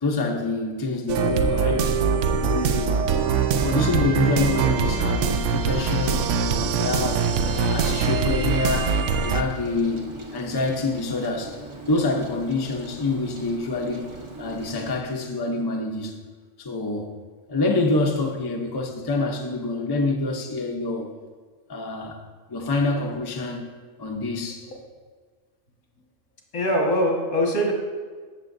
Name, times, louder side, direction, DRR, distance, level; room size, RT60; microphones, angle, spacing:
voice 1, 0.0-2.0 2.3-3.0 3.6-6.3 6.7-9.0 9.2-11.6 11.9-16.2 16.6-17.1 17.5-21.1 21.7-22.2 22.5-23.7 24.0-24.7, left 3 dB, 25° left, 2 dB, 0.6 m, -26 dB
sound 1, 1.1-9.4, right 6 dB, 70° right, 0.9 m, -23 dB
Rain, 5.6-15.0, right 2 dB, 25° right, 0.8 m, -41 dB
voice 2, 26.5-27.7, equal, 75° left, -1 dB, 2.1 m, -22 dB
15.0 x 6.9 x 2.6 m, 1.5 s
omnidirectional pair, 1.3 m